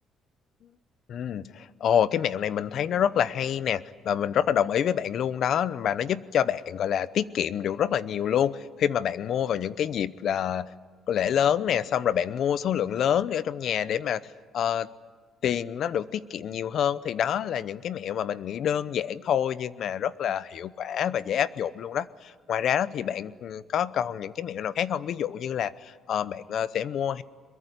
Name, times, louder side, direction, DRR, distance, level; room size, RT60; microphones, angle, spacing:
voice 1, 1.1-10.7 11.1-14.2 14.5-14.9 15.4-27.2, left 9 dB, 60° left, 17 dB, 0.8 m, -27 dB
22.5 x 22.0 x 9.9 m, 1.5 s
cardioid pair, 110°, 0 cm